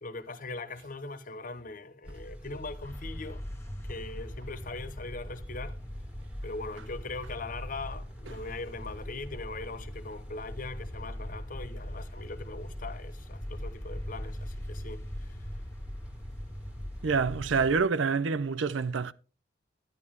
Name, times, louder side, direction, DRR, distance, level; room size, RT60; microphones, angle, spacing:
voice 1, 0.0-3.4 3.9-5.8 6.4-15.3, left 3 dB, 45° left, 0.9 m, -41 dB
sound 1, 2.0-17.8, equal, 5° right, 1.7 m, -44 dB
sound 2, 2.8-17.4, equal, 15° left, 1.5 m, -43 dB
voice 2, 17.0-19.1, right 5 dB, 80° right, 0.5 m, -27 dB
11.0 x 9.6 x 3.6 m
head